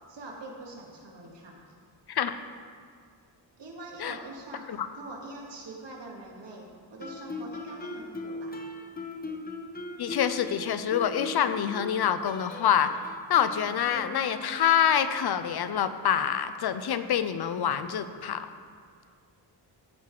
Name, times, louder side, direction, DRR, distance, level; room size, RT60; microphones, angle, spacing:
voice 1, 0.1-1.7 3.6-4.7 4.9-8.6, right 2 dB, 70° right, -1 dB, 1.9 m, -43 dB
Guitar, 7.0-14.7, left 2 dB, 20° left, 0.7 m, -40 dB
voice 2, 10.0-12.9 13.3-18.5, left 9 dB, 60° left, 11 dB, 0.6 m, -26 dB
14.5 x 5.7 x 4.8 m, 2.1 s
wide cardioid pair, 170°, 44 cm